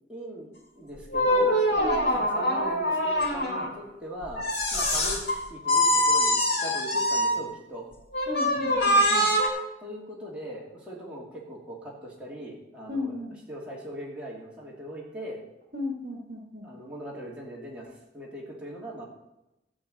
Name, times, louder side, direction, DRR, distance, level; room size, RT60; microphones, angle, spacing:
voice 1, 0.1-4.4 4.7-5.2 5.5-7.9 9.8-13.2 13.5-15.4 16.6-19.0, equal, 5° right, -6 dB, 3.0 m, -40 dB
sound 1, 1.1-3.7 4.4-5.4 5.6-7.4 8.1-9.5, equal, 80° left, 3.3 m, -24 dB
voice 2, 1.8-2.3 8.3-9.3 12.9-13.3 15.7-16.7, left 2 dB, 55° right, 2 dB, 1.5 m, -35 dB
12.5 x 4.9 x 8.4 m, 0.93 s
head